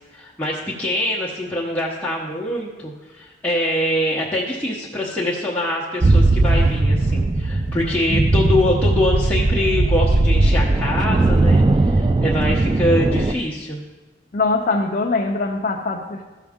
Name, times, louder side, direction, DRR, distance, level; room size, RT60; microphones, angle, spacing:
voice 1, 0.1-13.8, left 1 dB, 5° left, -7 dB, 0.9 m, -24 dB
sound 1, 6.0-13.3, right 2 dB, 25° right, 0.3 m, -18 dB
voice 2, 14.3-16.2, left 3 dB, 45° left, 1 dB, 0.6 m, -22 dB
13.5 x 6.0 x 3.6 m, 1.2 s
head